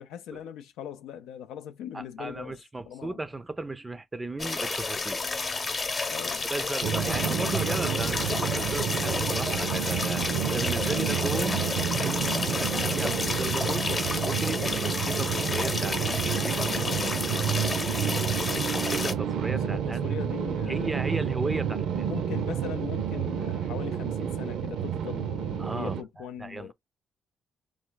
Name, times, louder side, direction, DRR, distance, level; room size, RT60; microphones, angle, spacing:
voice 1, 0.0-2.6 2.8-3.2 6.1-6.5 16.6-17.4 18.0-18.7 19.4-21.0 22.1-26.7, left 9 dB, 90° left, 0.3 m, -40 dB
voice 2, 1.9-5.2 6.5-10.2 10.5-11.7 12.0-13.9 14.2-17.1 18.6-20.2 20.7-22.1 25.6-26.7, right 2 dB, 20° right, 0.4 m, -35 dB
sound 1, 4.4-19.1, left 3 dB, 35° left, 0.8 m, -31 dB
sound 2, 6.8-26.0, right 8 dB, 80° right, 0.5 m, -30 dB
3.2 x 2.4 x 3.8 m
cardioid pair, 90°, 0 cm